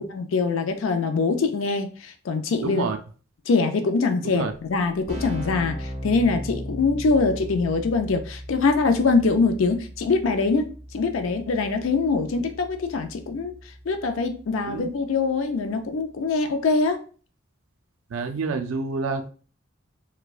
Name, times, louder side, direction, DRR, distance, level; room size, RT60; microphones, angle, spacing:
voice 1, 0.0-2.8 3.5-13.5 13.9-17.0, left 4 dB, 75° left, 0.4 m, -23 dB
voice 2, 2.6-3.0 4.2-4.5 14.7-14.9 18.1-19.3, right 4 dB, 80° right, 0.4 m, -28 dB
Keyboard (musical), 4.8-15.4, equal, 45° right, 1.5 m, -38 dB
4.3 x 2.2 x 2.4 m
head